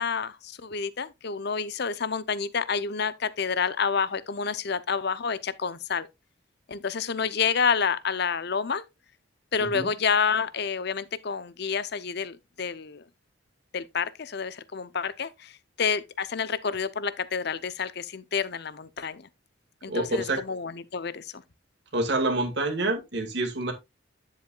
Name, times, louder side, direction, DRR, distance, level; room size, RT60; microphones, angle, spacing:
voice 1, 0.0-6.1 6.7-8.8 9.5-13.0 13.7-19.3 19.8-21.4, left 6 dB, 55° left, 0.6 m, -29 dB
voice 2, 19.9-20.4 21.9-23.7, right 2 dB, 55° right, 2.0 m, -27 dB
10.0 x 7.3 x 2.3 m
head